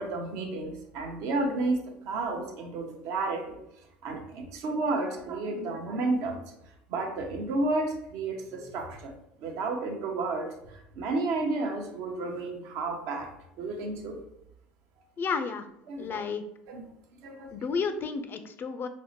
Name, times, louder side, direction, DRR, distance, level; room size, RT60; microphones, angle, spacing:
voice 1, 0.0-3.6 4.0-6.4 6.9-9.1 9.4-10.5 11.0-13.3 13.6-14.2 15.9-16.2 16.7-16.8 17.2-17.5, right 2 dB, 65° right, 3 dB, 0.7 m, -31 dB
voice 2, 15.2-15.7 16.0-16.4 17.5-18.9, left 5 dB, 40° left, 9 dB, 0.4 m, -31 dB
5.1 x 2.1 x 2.9 m, 0.81 s
hypercardioid pair, 75°, 5 cm